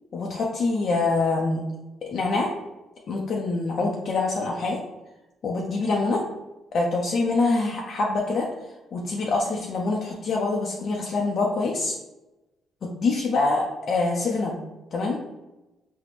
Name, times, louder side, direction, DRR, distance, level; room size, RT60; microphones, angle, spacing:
voice 1, 0.1-1.6 2.0-2.5 3.1-4.8 5.4-6.2 6.7-8.5 8.9-12.0 13.0-14.5 14.9-15.2, left 3 dB, 55° left, -1 dB, 0.4 m, -25 dB
4.1 x 2.1 x 2.9 m, 1.0 s
cardioid pair, 90°, 0 cm